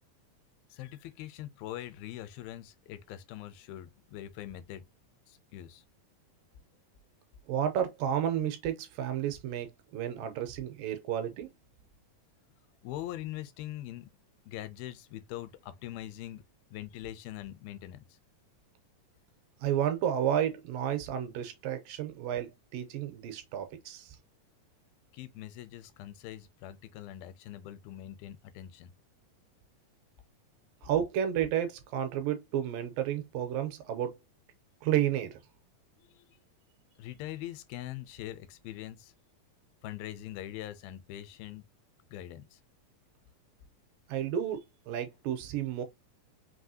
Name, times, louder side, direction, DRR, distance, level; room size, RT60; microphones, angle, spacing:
voice 1, 0.7-4.9 5.3-5.8 12.8-14.1 14.5-16.4 16.7-18.2 25.1-28.9 36.0-36.4 37.0-39.1 39.8-41.7 42.1-42.6, left 13 dB, 85° left, 2.4 m, -43 dB
voice 2, 7.5-11.5 19.6-24.2 30.8-34.2 34.8-35.4 44.1-45.8, right 10 dB, 80° right, 2.2 m, -31 dB
5.4 x 2.9 x 2.6 m
omnidirectional pair, 4.3 m